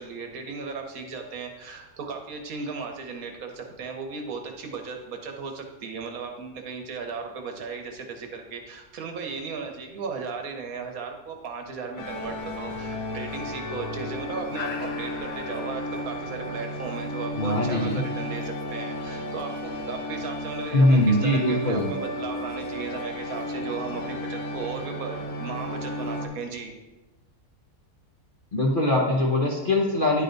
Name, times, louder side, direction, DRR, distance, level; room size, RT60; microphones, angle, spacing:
voice 1, 0.0-26.8, right 5 dB, 65° right, 4 dB, 1.2 m, -36 dB
sound 1, 12.0-26.3, left 1 dB, 65° left, 1.1 m, -33 dB
voice 2, 17.4-18.0 20.7-21.9 28.5-30.2, left 1 dB, 45° left, -2 dB, 0.7 m, -22 dB
9.9 x 3.4 x 3.9 m, 1.1 s
omnidirectional pair, 1.7 m